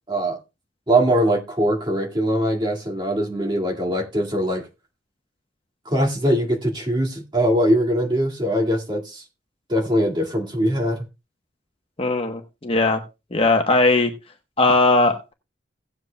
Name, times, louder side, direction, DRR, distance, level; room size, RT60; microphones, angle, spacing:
voice 1, 0.1-0.4 0.9-4.7 5.9-9.2 9.7-11.0, equal, 25° right, 2.1 m, -22 dB
voice 2, 12.0-13.0 13.3-14.1 14.6-15.3, left 2 dB, 30° left, 1.0 m, -19 dB
17.5 x 7.8 x 2.3 m
head